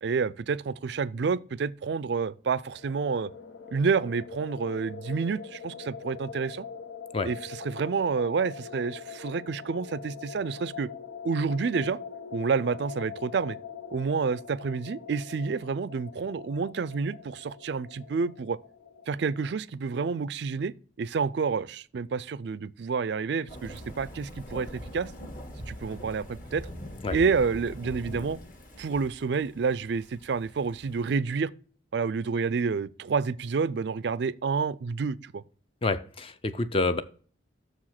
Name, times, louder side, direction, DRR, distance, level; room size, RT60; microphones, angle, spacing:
voice 1, 0.0-3.3 3.7-6.7 7.2-10.9 11.2-12.0 12.3-13.6 13.9-18.6 19.1-25.1 25.7-26.7 27.1-28.4 28.8-31.5 31.9-35.4, right 5 dB, 60° right, 0.4 m, -29 dB
sound 1, 2.6-19.5, left 6 dB, 80° left, 0.9 m, -43 dB
sound 2, 23.5-31.2, equal, 45° left, 1.6 m, -42 dB
voice 2, 35.8-37.0, left 3 dB, 30° left, 0.4 m, -28 dB
6.7 x 4.9 x 5.7 m
head